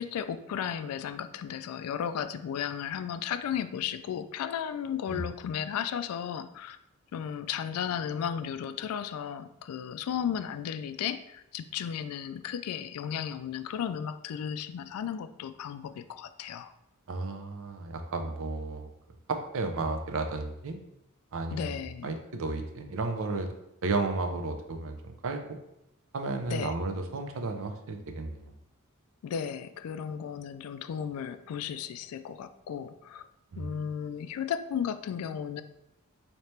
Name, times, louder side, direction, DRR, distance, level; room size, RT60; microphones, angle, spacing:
voice 1, 0.0-6.8 7.1-16.7 21.5-22.1 26.5-26.7 29.2-33.3 33.6-35.6, left 8 dB, 75° left, 14 dB, 0.3 m, -34 dB
voice 2, 17.1-18.9 19.3-20.8 21.3-21.7 22.0-23.5 23.8-25.6 26.1-28.5 33.5-33.8, right 3 dB, 65° right, 5 dB, 0.5 m, -33 dB
4.3 x 2.9 x 3.2 m, 0.85 s
head